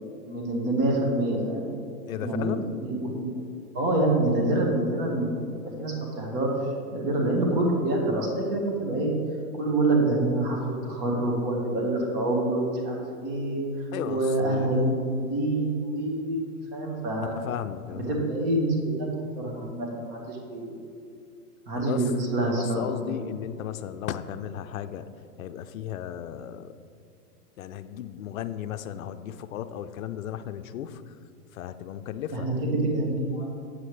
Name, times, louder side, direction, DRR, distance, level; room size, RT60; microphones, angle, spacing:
voice 1, 0.3-1.7 2.2-2.5 2.8-3.3 3.7-5.3 5.8-6.5 6.9-9.1 9.6-13.6 14.0-17.4 17.9-19.1 19.3-20.7 21.7-23.2 32.3-33.6, right 2 dB, 35° right, -1 dB, 1.6 m, -26 dB
voice 2, 2.1-2.7 13.9-14.8 17.2-18.2 21.8-22.0 22.4-25.1 25.4-26.7 27.6-31.0 31.5-32.5, left 10 dB, 60° left, 11 dB, 0.5 m, -35 dB
8.3 x 7.7 x 3.3 m, 2.4 s
hypercardioid pair, 155°, 47 cm